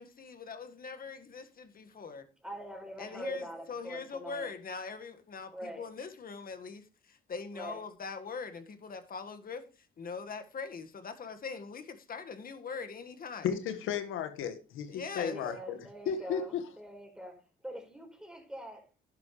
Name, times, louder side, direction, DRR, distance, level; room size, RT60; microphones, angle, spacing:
voice 1, 0.0-2.3 3.0-9.7 10.0-13.5 14.9-15.4, left 5 dB, 45° left, 1.8 m, -42 dB
voice 2, 2.4-4.5 5.5-5.8 7.5-7.8 15.2-19.1, equal, 5° right, 4.6 m, -44 dB
voice 3, 13.4-15.8 16.1-16.6, left 8 dB, 90° left, 1.7 m, -34 dB
11.0 x 11.0 x 3.3 m
cardioid pair, 90°, 20 cm